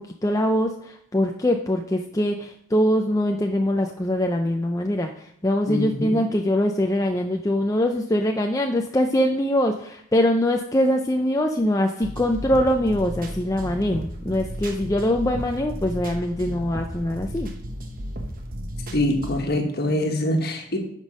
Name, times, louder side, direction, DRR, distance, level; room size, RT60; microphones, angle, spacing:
voice 1, 0.0-17.5, left 1 dB, 15° left, 3 dB, 0.4 m, -23 dB
voice 2, 5.7-6.2 18.9-20.8, left 1 dB, 45° left, 3 dB, 1.4 m, -24 dB
sound 1, 12.0-19.4, equal, 40° right, 1.2 m, -34 dB
9.5 x 5.3 x 6.2 m, 0.70 s
head